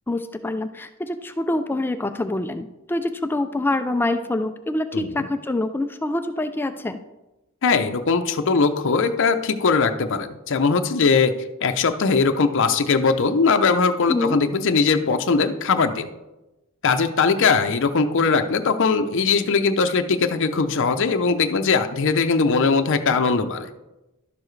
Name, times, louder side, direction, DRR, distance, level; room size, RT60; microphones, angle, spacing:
voice 1, 0.1-7.0 14.1-14.4, left 2 dB, 10° left, 9 dB, 0.3 m, -25 dB
voice 2, 4.9-5.3 7.6-11.3 11.6-16.1 16.8-23.7, left 4 dB, 60° left, 7 dB, 0.6 m, -20 dB
11.5 x 6.9 x 3.2 m, 0.99 s
head